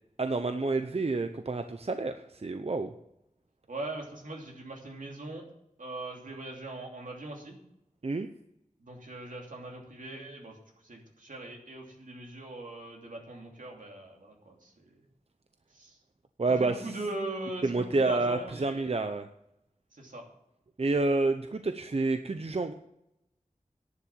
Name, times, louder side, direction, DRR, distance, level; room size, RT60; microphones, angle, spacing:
voice 1, 0.2-2.9 8.0-8.3 16.4-16.8 17.6-19.3 20.8-22.7, right 3 dB, 50° right, 8 dB, 0.7 m, -29 dB
voice 2, 3.7-5.5 5.8-7.6 8.8-10.6 10.8-15.0 15.7-16.0 16.6-18.9 19.9-20.2, right 2 dB, 80° right, 0 dB, 2.9 m, -41 dB
11.0 x 7.2 x 8.8 m, 0.82 s
wide cardioid pair, 50°, 13 cm